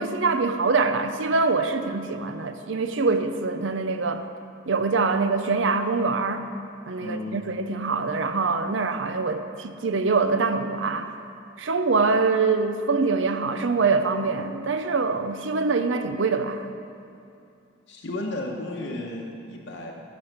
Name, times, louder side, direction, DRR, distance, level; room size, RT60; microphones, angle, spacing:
voice 1, 0.0-4.3 4.7-6.4 6.9-11.1 11.6-16.7, right 4 dB, 65° right, 9 dB, 0.6 m, -24 dB
voice 2, 7.0-7.4 17.9-19.9, left 2 dB, 60° left, -1 dB, 1.0 m, -33 dB
10.5 x 7.1 x 6.7 m, 2.5 s
head